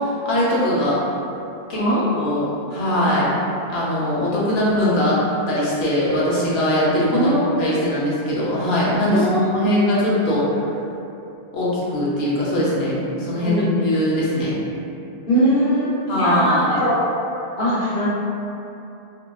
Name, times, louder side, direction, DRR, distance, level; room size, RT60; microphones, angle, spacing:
voice 1, 0.0-1.0 1.7-3.3 3.7-5.2 5.5-7.3 7.6-10.4 11.5-14.6 16.1-16.8, left 1 dB, 75° left, -7 dB, 1.0 m, -21 dB
voice 2, 1.7-2.3 3.0-3.4 7.1-7.9 9.1-10.0 13.4-13.7 15.3-17.0 17.6-18.1, equal, 55° left, -15 dB, 1.1 m, -22 dB
2.7 x 2.5 x 2.2 m, 2.8 s
omnidirectional pair, 1.1 m